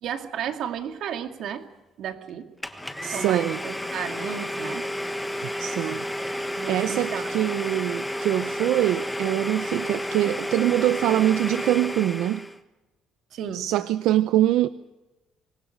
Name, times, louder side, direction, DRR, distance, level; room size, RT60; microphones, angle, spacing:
voice 1, 0.0-1.7 2.0-2.5 3.1-4.9 6.6-7.5 13.3-13.7, right 9 dB, 55° right, 7 dB, 2.3 m, -33 dB
Domestic sounds home sounds, 2.6-12.6, equal, 5° left, 1.4 m, -31 dB
voice 2, 3.0-3.6 5.6-6.0 6.7-12.4 13.5-14.7, right 14 dB, 80° right, 14 dB, 0.7 m, -24 dB
25.5 x 21.0 x 6.6 m, 1.1 s
cardioid pair, 165°, 0 cm